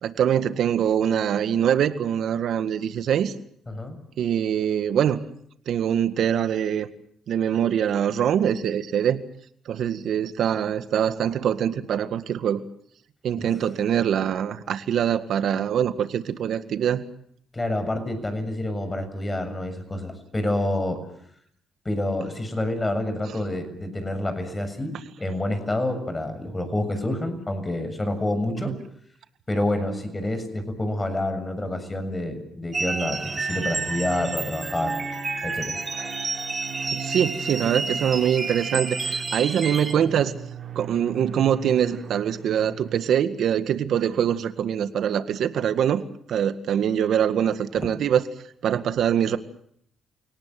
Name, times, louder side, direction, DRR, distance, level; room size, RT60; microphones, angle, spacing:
voice 1, 0.0-3.3 4.2-5.2 5.7-6.9 7.3-9.2 9.7-12.6 13.2-17.0 28.6-28.8 36.9-40.3 40.8-46.0 46.3-48.2 48.6-49.4, right 9 dB, 70° right, 11 dB, 1.9 m, -23 dB
voice 2, 3.7-4.0 13.4-13.5 17.5-21.0 21.9-24.9 25.2-28.7 29.5-34.9 35.4-35.8 47.7-47.9, left 1 dB, 20° left, 9 dB, 7.0 m, -28 dB
sound 1, 32.7-39.9, right 3 dB, 30° right, 3.3 m, -30 dB
sound 2, 33.1-43.0, right 5 dB, 50° right, 6.4 m, -39 dB
29.5 x 18.5 x 7.8 m, 0.68 s
cardioid pair, 90°, 0 cm